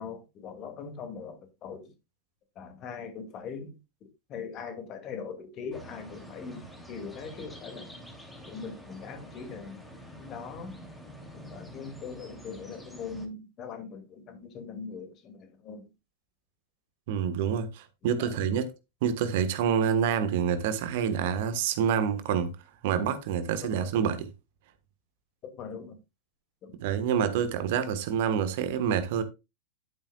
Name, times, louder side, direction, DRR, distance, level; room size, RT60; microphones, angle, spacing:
voice 1, 0.0-1.9 2.6-3.8 4.3-7.9 8.4-10.7 11.5-15.9 18.2-18.4 23.7-23.9 25.4-26.0 26.6-26.8, left 5 dB, 35° left, 2.5 m, -41 dB
sound 1, 5.7-13.3, equal, 5° left, 3.0 m, -47 dB
voice 2, 17.1-18.7 19.0-22.5 22.8-24.3 26.8-29.2, right 8 dB, 50° right, 1.4 m, -27 dB
11.0 x 8.9 x 2.4 m
figure-of-eight pair, 90°, 0 cm